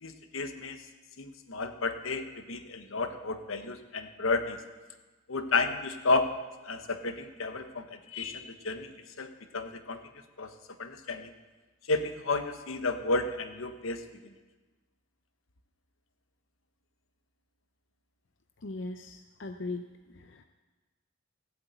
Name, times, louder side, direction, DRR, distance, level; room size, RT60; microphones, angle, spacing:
voice 1, 0.0-0.8 1.2-4.6 5.3-6.3 6.6-10.0 10.4-10.5 10.8-11.3 11.9-14.3, left 3 dB, 80° left, 8 dB, 1.1 m, -32 dB
voice 2, 18.6-19.9 20.1-20.4, left 3 dB, 60° left, 7 dB, 0.6 m, -39 dB
15.5 x 8.1 x 8.1 m, 1.3 s
head